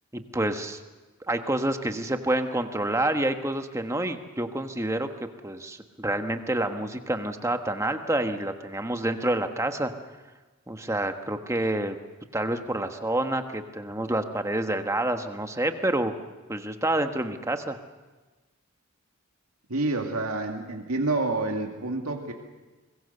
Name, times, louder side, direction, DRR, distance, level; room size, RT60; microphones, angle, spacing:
voice 1, 0.1-0.8 1.3-9.9 10.7-12.0 12.3-16.1 16.5-17.8, right 1 dB, 15° right, 7 dB, 1.3 m, -28 dB
voice 2, 19.7-22.3, right 2 dB, 85° right, 2 dB, 2.3 m, -28 dB
24.5 x 21.5 x 6.8 m, 1.2 s
head